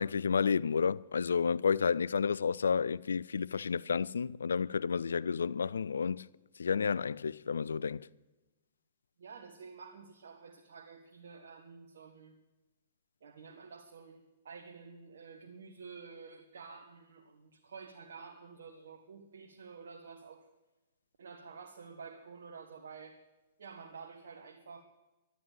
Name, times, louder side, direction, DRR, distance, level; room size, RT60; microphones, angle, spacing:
voice 1, 0.0-6.2 6.6-8.1, left 6 dB, 80° left, 0.4 m, -31 dB
voice 2, 9.2-12.3 13.2-20.5 21.2-23.2 23.6-24.8, right 5 dB, 75° right, 1.4 m, -50 dB
12.0 x 11.0 x 9.0 m
hypercardioid pair, 120°, 0 cm